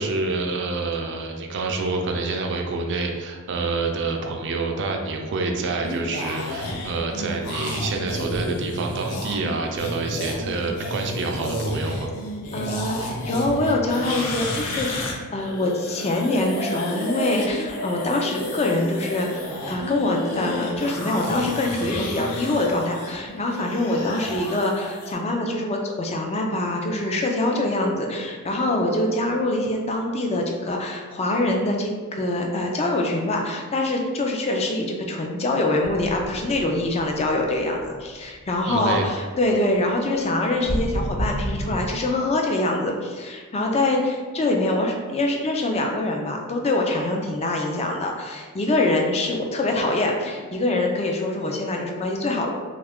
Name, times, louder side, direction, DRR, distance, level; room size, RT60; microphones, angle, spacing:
voice 1, 0.0-12.1 24.0-24.4 38.7-39.1, right 3 dB, 55° right, 2 dB, 0.4 m, -27 dB
sound 1, 5.8-15.1 15.4-25.1, left 1 dB, 80° left, 0.6 m, -31 dB
voice 2, 12.5-52.5, left 2 dB, 30° left, 1 dB, 0.4 m, -24 dB
sound 2, 35.8-38.6 38.9-39.1 40.7-41.9, equal, 45° left, 1.1 m, -31 dB
3.0 x 2.4 x 3.5 m, 1.5 s
head